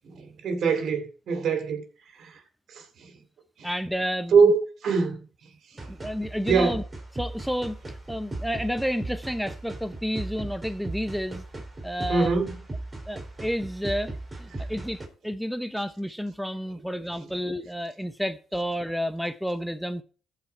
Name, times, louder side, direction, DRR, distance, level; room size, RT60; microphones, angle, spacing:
voice 1, 0.0-1.8 2.2-2.3 2.7-3.1 3.6-3.7 4.3-4.6 4.8-5.2 5.8-5.9 6.5-6.8 12.1-12.5, right 5 dB, 65° right, 2.6 m, -23 dB
voice 2, 3.6-4.5 5.9-6.8 7.1-7.8 8.1-11.4 11.8-12.4 13.1-14.1 14.4-20.0, equal, ahead, 0.6 m, -30 dB
sound 1, 5.8-15.1, right 2 dB, 20° right, 3.7 m, -37 dB
14.5 x 4.9 x 4.5 m
cardioid pair, 90°, 0 cm